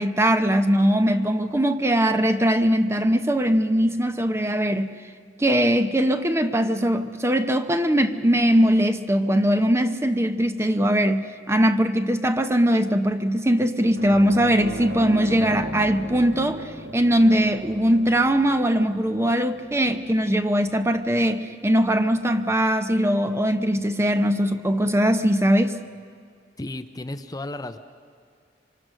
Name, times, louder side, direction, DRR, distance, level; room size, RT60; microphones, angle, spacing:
voice 1, 0.0-4.9 5.4-25.8, equal, 15° right, 0.8 m, -21 dB
sound 1, 14.0-22.9 23.2-23.4 25.5-25.6, right 1 dB, 65° right, 2.1 m, -38 dB
voice 2, 26.6-27.8, left 2 dB, 20° left, 0.7 m, -33 dB
26.5 x 24.5 x 6.4 m
head